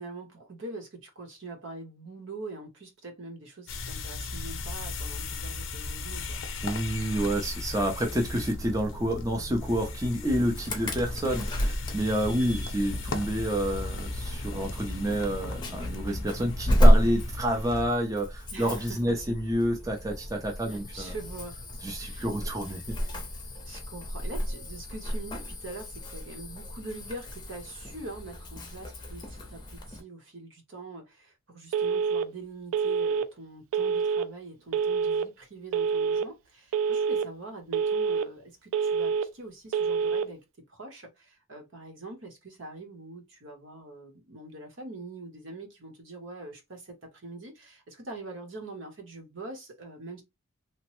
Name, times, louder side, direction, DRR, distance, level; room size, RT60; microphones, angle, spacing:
voice 1, 0.0-6.4 12.4-12.6 18.5-19.2 20.7-21.6 22.0-22.5 23.6-40.4 40.7-50.2, right 2 dB, 65° right, 0.9 m, -43 dB
sound 1, 3.7-17.9, left 2 dB, 70° left, 0.6 m, -36 dB
voice 2, 6.6-21.1 21.8-23.2, equal, 15° right, 0.5 m, -29 dB
Insect / Alarm, 10.6-30.0, equal, 20° left, 0.6 m, -30 dB
Telephone, 31.7-32.3 32.7-33.3 33.7-34.3 34.7-35.3 35.7-36.3 36.7-37.3 37.7-38.3 38.7-39.3 39.7-40.3, right 6 dB, 90° right, 0.3 m, -26 dB
2.9 x 2.1 x 3.0 m
head